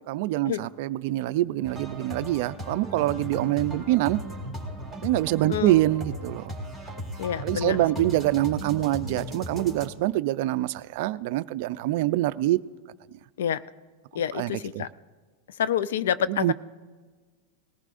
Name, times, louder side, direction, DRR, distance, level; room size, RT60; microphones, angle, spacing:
voice 1, 0.0-4.2 5.0-6.6 7.4-12.6 14.3-14.8 16.3-16.5, right 16 dB, 60° right, 15 dB, 0.4 m, -25 dB
sound 1, 1.6-9.9, equal, 10° left, 2.4 m, -37 dB
voice 2, 7.2-8.0 13.4-13.6 14.1-14.9 15.6-16.5, left 9 dB, 85° left, 16 dB, 0.4 m, -28 dB
19.5 x 14.5 x 2.5 m, 1.4 s
supercardioid pair, 130°, 0 cm